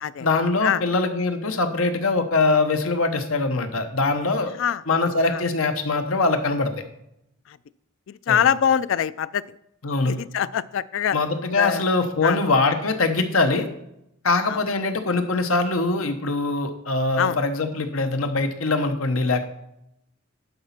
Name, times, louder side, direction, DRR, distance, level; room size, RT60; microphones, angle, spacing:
voice 1, 0.2-4.5 4.9-6.7 8.3-8.4 9.8-10.1 11.1-13.7 14.2-19.5, left 3 dB, 90° left, 7 dB, 1.0 m, -22 dB
voice 2, 8.1-9.4 10.0-11.2 11.6-11.8 12.2-12.4 14.5-14.6 17.2-17.4, left 8 dB, 65° left, 17 dB, 0.3 m, -23 dB
11.0 x 4.1 x 5.8 m, 0.82 s
head